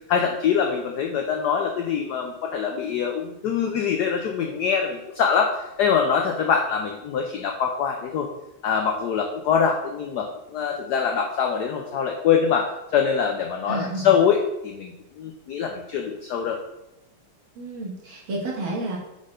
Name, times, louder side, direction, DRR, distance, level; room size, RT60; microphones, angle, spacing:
voice 1, 0.1-8.3 8.6-16.6, left 7 dB, 85° left, 3 dB, 0.9 m, -24 dB
voice 2, 13.7-14.1 17.6-19.0, right 2 dB, 70° right, -3 dB, 2.2 m, -30 dB
5.1 x 4.2 x 4.9 m, 0.92 s
omnidirectional pair, 2.3 m